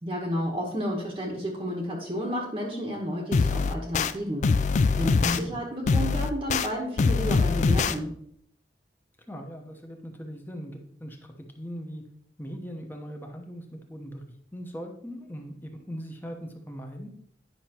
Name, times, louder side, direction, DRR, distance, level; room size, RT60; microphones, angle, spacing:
voice 1, 0.0-8.1, equal, 25° right, -2 dB, 1.0 m, -31 dB
sound 1, 3.3-4.1 4.4-5.4 5.9-6.7 7.0-7.9, left 4 dB, 40° left, 0.3 m, -23 dB
voice 2, 9.3-12.1 12.4-14.2 14.5-17.1, equal, 10° left, 3 dB, 1.0 m, -40 dB
9.6 x 5.8 x 2.9 m, 0.66 s
head